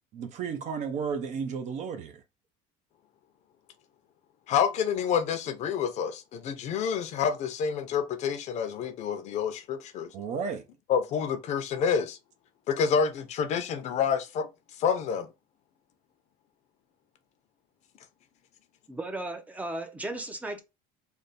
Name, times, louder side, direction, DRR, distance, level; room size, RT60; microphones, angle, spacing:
voice 1, 0.1-2.2 10.1-10.6, right 6 dB, 50° right, 0.7 m, -33 dB
voice 2, 4.5-10.1 10.9-12.2 12.7-14.5 14.8-15.3, left 7 dB, 45° left, 0.6 m, -28 dB
voice 3, 18.9-20.6, right 2 dB, 10° right, 0.6 m, -35 dB
3.4 x 2.2 x 4.0 m
cardioid pair, 145°, 16 cm